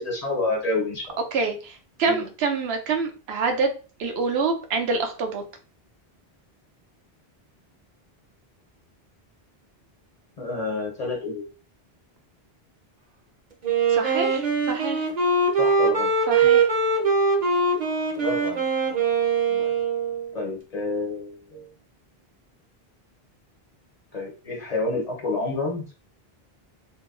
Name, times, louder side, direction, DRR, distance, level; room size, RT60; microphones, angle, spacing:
voice 1, 0.0-1.2 2.1-2.3 10.4-11.4 15.5-16.1 18.1-19.1 19.5-19.7 20.3-21.7 24.1-25.9, left 2 dB, 40° left, -1 dB, 0.7 m, -29 dB
voice 2, 1.3-3.7 4.0-5.4 13.9-15.1 16.3-16.7, right 4 dB, 80° right, 5 dB, 0.8 m, -26 dB
Wind instrument woodwind instrument, 13.6-20.3, right 4 dB, 50° right, 0.7 m, -22 dB
2.8 x 2.2 x 2.3 m, 0.35 s
omnidirectional pair, 1.0 m